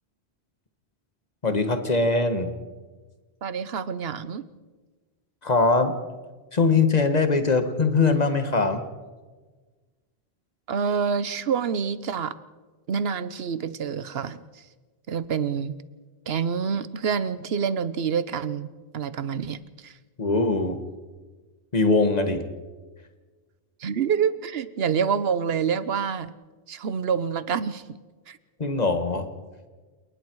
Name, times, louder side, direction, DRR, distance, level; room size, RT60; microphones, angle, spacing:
voice 1, 1.4-2.5 5.4-5.9 6.5-8.8 20.2-20.8 21.7-22.4 28.6-29.3, left 3 dB, 40° left, 7 dB, 1.7 m, -21 dB
voice 2, 3.4-4.5 10.7-12.3 12.9-14.6 15.1-15.8 16.3-20.0 23.8-26.3 26.7-28.0 28.3-28.4, right 7 dB, 70° right, 15 dB, 1.1 m, -27 dB
29.0 x 19.5 x 4.7 m, 1.3 s
omnidirectional pair, 1.1 m